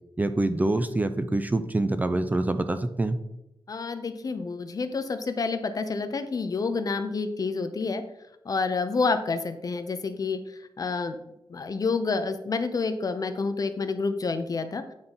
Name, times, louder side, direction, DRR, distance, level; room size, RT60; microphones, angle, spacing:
voice 1, 0.2-3.2, right 2 dB, 20° right, 10 dB, 0.4 m, -25 dB
voice 2, 3.7-8.0 8.5-10.4 10.8-11.2 11.5-14.8, left 4 dB, 45° left, 9 dB, 0.7 m, -28 dB
8.9 x 3.7 x 5.7 m, 0.85 s
wide cardioid pair, 160°, 9 cm